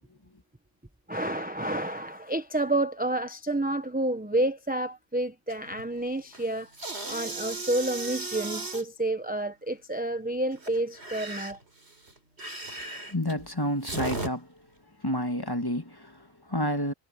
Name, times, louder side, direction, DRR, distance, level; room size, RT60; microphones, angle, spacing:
voice 1, 1.1-6.7 7.1-11.6, right 1 dB, 10° right, 0.9 m, -29 dB
sound 1, 5.5-5.8 6.2-8.8 10.5-14.3, right 2 dB, 50° right, 4.0 m, -36 dB
voice 2, 13.1-14.5 15.0-16.9, equal, 15° left, 1.7 m, -30 dB
omnidirectional pair, 1.4 m